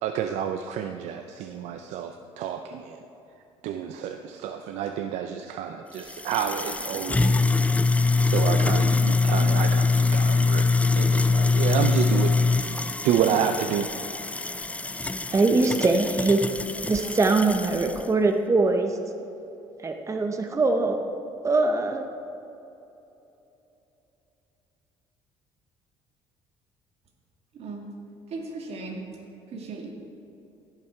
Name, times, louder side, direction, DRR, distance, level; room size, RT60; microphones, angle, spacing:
voice 1, 0.0-3.0 3.6-7.7 7.9-10.7 11.0-12.5 13.0-13.9 15.0-15.2, right 8 dB, 75° right, 7 dB, 0.5 m, -29 dB
sound 1, 6.0-18.0, left 4 dB, 10° left, 0.4 m, -24 dB
voice 2, 15.3-16.4 16.8-19.0 19.8-21.0 21.4-22.1, right 3 dB, 25° right, 5 dB, 0.7 m, -22 dB
voice 3, 27.5-27.9 28.3-29.0 29.5-29.9, right 3 dB, 60° right, 1 dB, 1.9 m, -36 dB
16.0 x 5.9 x 4.5 m, 3.0 s
supercardioid pair, 75°, 12 cm